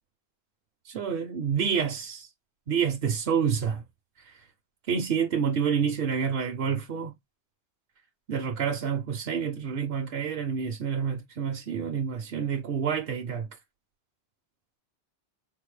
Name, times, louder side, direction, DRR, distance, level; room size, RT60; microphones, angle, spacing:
voice 1, 0.9-2.3 2.7-3.8 4.3-4.4 4.9-7.1 8.3-13.5, right 7 dB, 60° right, 0.7 m, -28 dB
3.9 x 2.1 x 3.1 m
omnidirectional pair, 1.1 m